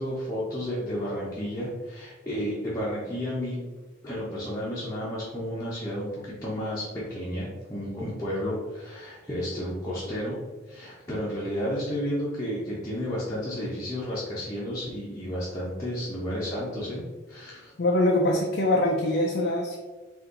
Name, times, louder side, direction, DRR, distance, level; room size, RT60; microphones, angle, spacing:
voice 1, 0.0-3.6 4.0-10.4 10.7-17.0 17.3-17.7, equal, 15° left, -9 dB, 0.9 m, -32 dB
voice 2, 17.8-19.8, left 1 dB, 50° left, -1 dB, 0.5 m, -23 dB
4.3 x 2.6 x 3.8 m, 1.2 s
head